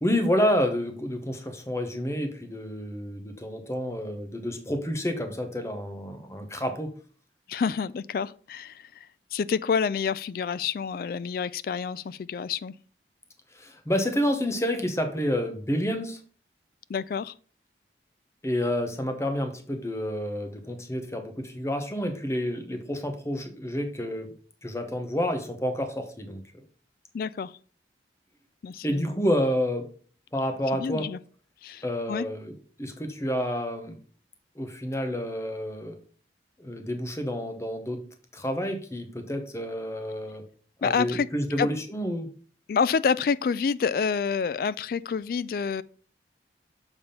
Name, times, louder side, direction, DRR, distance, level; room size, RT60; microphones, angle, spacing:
voice 1, 0.0-6.9 13.5-16.2 18.4-24.3 24.6-26.4 28.8-29.9 30.3-31.1 31.8-32.5 32.8-33.9 34.6-36.0 36.6-38.0 38.3-40.4 40.8-42.3, equal, 15° left, 0.9 m, -29 dB
voice 2, 7.5-12.7 16.9-17.3 27.1-27.6 28.6-29.1 30.7-31.2 31.6-32.3 40.8-41.3 41.6-41.7 42.7-45.8, left 6 dB, 55° left, 0.3 m, -28 dB
6.9 x 3.6 x 5.5 m
head